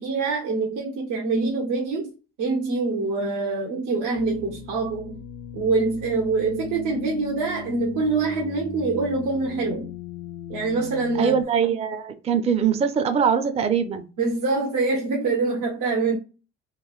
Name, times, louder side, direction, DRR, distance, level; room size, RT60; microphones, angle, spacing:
voice 1, 0.0-2.1 2.4-5.2 5.5-9.9 10.5-11.4 14.2-16.2, right 3 dB, 85° right, 0.8 m, -25 dB
sound 1, 4.2-11.4, left 8 dB, 75° left, 0.4 m, -39 dB
voice 2, 11.1-14.1, right 7 dB, 20° right, 0.4 m, -22 dB
3.0 x 2.5 x 2.3 m
cardioid pair, 90°, 30 cm